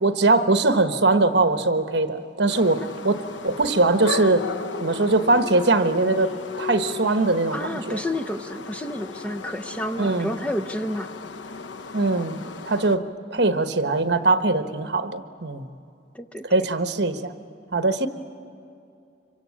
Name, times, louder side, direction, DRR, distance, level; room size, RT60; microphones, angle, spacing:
voice 1, 0.0-4.4 4.8-8.0 10.0-10.3 11.9-12.4 12.6-13.0 13.3-15.7 16.4-17.3 17.7-18.1, right 3 dB, 70° right, 8 dB, 1.2 m, -21 dB
sound 1, 2.5-13.0, left 5 dB, 85° left, 0.8 m, -35 dB
voice 2, 7.5-11.1 16.1-16.4, left 1 dB, 5° left, 6 dB, 0.6 m, -30 dB
25.5 x 23.5 x 8.6 m, 2.6 s
head